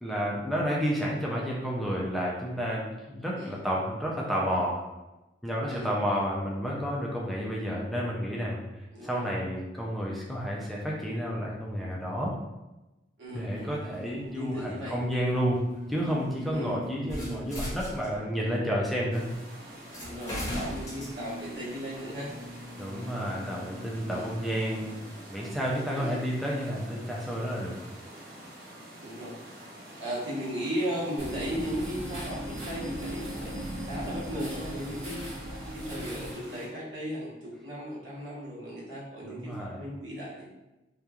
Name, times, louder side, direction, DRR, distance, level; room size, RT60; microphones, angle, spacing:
voice 1, 0.0-4.8 5.4-8.6 9.0-12.4 13.3-15.6 15.9-19.3 22.8-25.0 25.3-27.8 39.2-39.8, equal, ahead, -4 dB, 0.3 m, -30 dB
voice 2, 8.9-9.3 13.2-15.0 16.5-16.9 20.0-22.3 24.1-24.3 25.9-26.3 29.0-29.4 30.0-35.2 35.7-40.5, equal, 75° right, -6 dB, 1.0 m, -36 dB
sound 1, 13.3-18.5 19.3-19.4 19.9-24.9, left 1 dB, 20° left, 0.8 m, -40 dB
sound 2, 19.1-36.7, right 1 dB, 55° right, 0.6 m, -47 dB
sound 3, 31.2-36.3, right 1 dB, 35° right, 0.9 m, -37 dB
2.9 x 2.2 x 2.3 m, 1.0 s
head